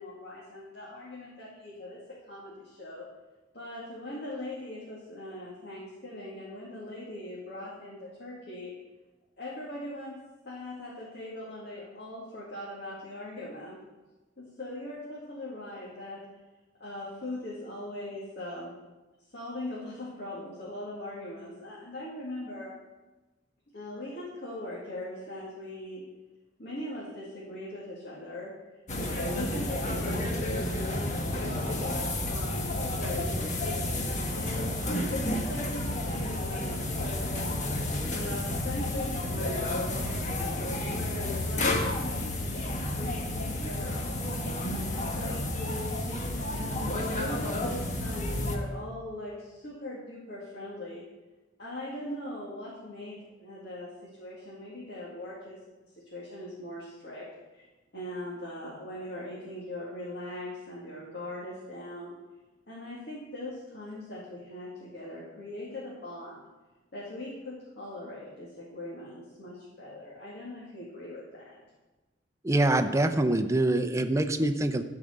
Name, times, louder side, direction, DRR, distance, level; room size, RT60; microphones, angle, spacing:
voice 1, 0.0-3.1 3.5-8.7 9.4-10.2 10.5-13.8 14.4-16.2 16.8-18.7 19.3-22.7 23.7-26.0 26.6-28.5 29.0-33.7 34.3-37.7 38.1-44.0 44.8-46.0 46.4-51.1 51.6-57.3 57.5-57.7 57.9-62.2 62.7-66.4 66.9-71.6, left 1 dB, 60° left, -6 dB, 2.3 m, -40 dB
sound 1, 28.9-48.6, left 1 dB, 40° left, 1.3 m, -31 dB
voice 2, 72.4-74.8, right 1 dB, 15° right, 8 dB, 0.6 m, -25 dB
13.5 x 4.9 x 6.6 m, 1.2 s
head